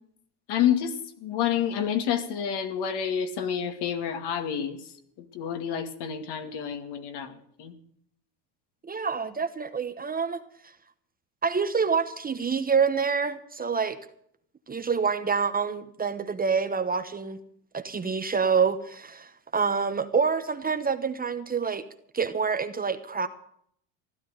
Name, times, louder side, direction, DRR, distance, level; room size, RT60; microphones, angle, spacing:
voice 1, 0.5-7.7, left 9 dB, 55° left, 8 dB, 2.4 m, -29 dB
voice 2, 8.9-10.4 11.4-14.0 14.7-17.4 17.7-21.8 22.1-23.3, right 5 dB, 20° right, 9 dB, 1.1 m, -27 dB
15.5 x 12.0 x 6.5 m, 0.67 s
cardioid pair, 125°, 46 cm